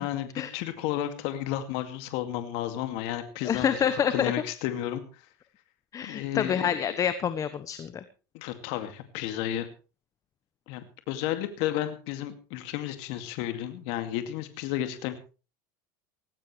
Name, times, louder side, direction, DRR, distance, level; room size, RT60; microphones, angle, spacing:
voice 1, 0.0-5.2 6.0-7.0 8.3-9.7 10.7-15.2, left 12 dB, 65° left, 8 dB, 2.3 m, -32 dB
voice 2, 3.4-4.3 5.9-8.0, left 8 dB, 30° left, 12 dB, 1.2 m, -27 dB
18.5 x 16.0 x 3.3 m, 0.34 s
supercardioid pair, 110°, 11 cm